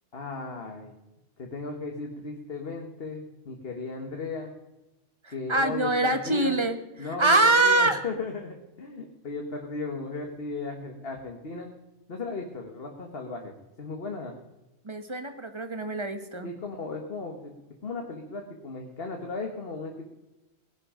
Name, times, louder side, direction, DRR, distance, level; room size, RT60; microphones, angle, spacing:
voice 1, 0.1-0.9 1.4-4.5 5.3-6.6 7.0-11.7 12.1-13.5 13.8-14.3 16.4-17.5 17.8-20.0, left 3 dB, 60° left, 2 dB, 1.7 m, -36 dB
voice 2, 5.2-6.8 7.2-8.0 14.8-16.5, right 2 dB, 25° right, 8 dB, 1.3 m, -24 dB
19.0 x 11.0 x 5.0 m, 1.0 s
omnidirectional pair, 1.1 m